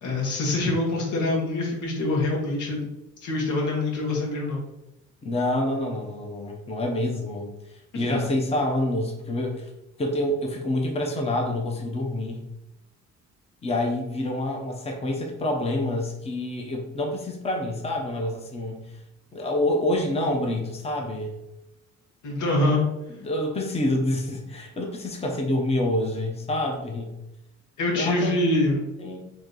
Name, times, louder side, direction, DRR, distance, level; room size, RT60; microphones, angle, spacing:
voice 1, 0.0-2.9 3.2-4.6 7.9-8.2 22.2-22.8 27.8-28.9, left 2 dB, 80° left, -1 dB, 1.3 m, -25 dB
voice 2, 5.2-7.5 7.9-9.7 10.0-12.4 13.6-18.8 19.3-21.3 22.6-22.8 23.1-27.1 27.9-28.3 29.0-29.2, left 1 dB, 20° left, 1 dB, 0.7 m, -27 dB
3.1 x 2.7 x 3.9 m, 0.92 s
cardioid pair, 90°, 30 cm